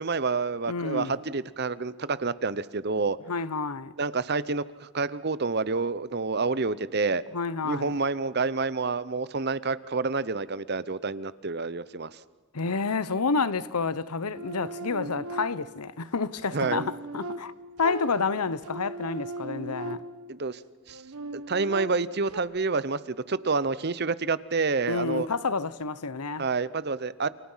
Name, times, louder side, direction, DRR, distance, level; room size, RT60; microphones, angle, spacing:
voice 1, 0.0-3.2 4.0-7.2 7.6-12.1 16.5-16.9 20.3-20.6 20.9-21.0 21.3-25.3 26.4-27.3, right 4 dB, 45° right, 0.8 m, -28 dB
voice 2, 0.7-1.2 3.3-3.9 7.3-8.0 12.5-17.5 17.8-20.0 24.9-26.5, left 4 dB, 90° left, 1.0 m, -29 dB
sound 1, 14.3-15.9 16.4-20.4 20.9-22.4, right 2 dB, 80° right, 1.5 m, -38 dB
30.0 x 29.0 x 5.7 m
head